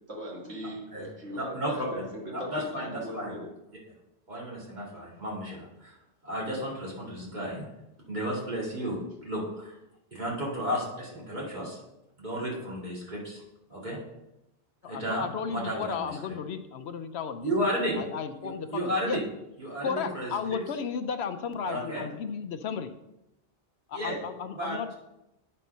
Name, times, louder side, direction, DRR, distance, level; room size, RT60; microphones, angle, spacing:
voice 1, 0.1-3.5, equal, 75° right, -3 dB, 2.3 m, -39 dB
voice 2, 1.3-2.0 2.3-3.3 4.3-5.9 6.2-7.6 8.1-9.8 10.1-11.8 12.2-13.4 13.7-14.0 14.9-15.3 15.5-16.1 17.4-18.0 18.4-19.2 19.6-20.3 21.6-22.0 23.9-24.2 24.6-24.8, equal, 40° right, -5 dB, 2.7 m, -33 dB
voice 3, 14.8-17.5 17.9-19.2 19.8-22.9 23.9-24.9, left 6 dB, 70° left, 9 dB, 0.8 m, -34 dB
9.3 x 4.4 x 5.4 m, 0.90 s
omnidirectional pair, 1.1 m